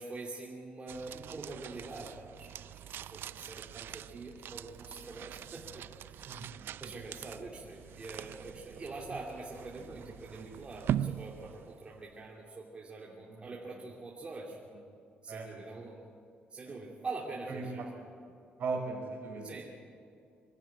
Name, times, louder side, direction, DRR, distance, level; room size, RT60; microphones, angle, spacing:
voice 1, 0.0-6.4 6.8-14.6 15.2-16.1 16.5-17.9 19.4-19.7, right 3 dB, 30° right, -3 dB, 2.7 m, -44 dB
sound 1, 0.9-12.2, right 10 dB, 75° right, 0.5 m, -42 dB
voice 2, 6.3-6.9 10.3-10.5 11.4-11.5 13.3-13.4 15.3-15.9 17.5-17.6 18.6-19.5, right 4 dB, 60° right, 0 dB, 5.3 m, -39 dB
24.0 x 12.0 x 9.4 m, 2.4 s
cardioid pair, 120°, 4 cm